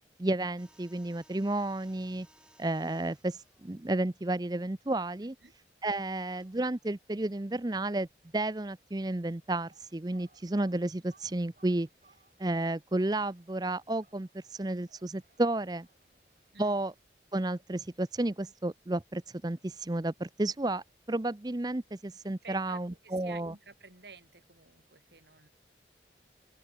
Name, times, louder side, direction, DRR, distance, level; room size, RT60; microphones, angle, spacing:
voice 1, 0.2-2.3 2.6-5.3 5.8-8.1 8.3-11.9 12.4-15.9 16.6-16.9 17.3-23.5, right 2 dB, 20° right, 0.6 m, -32 dB
sound 1, 0.6-5.1 6.2-7.6, right 1 dB, 5° right, 6.8 m, -65 dB
sound 2, 9.4-17.0, right 3 dB, 45° right, 6.5 m, -68 dB
voice 2, 22.4-25.5, right 4 dB, 70° right, 4.4 m, -51 dB
open air
head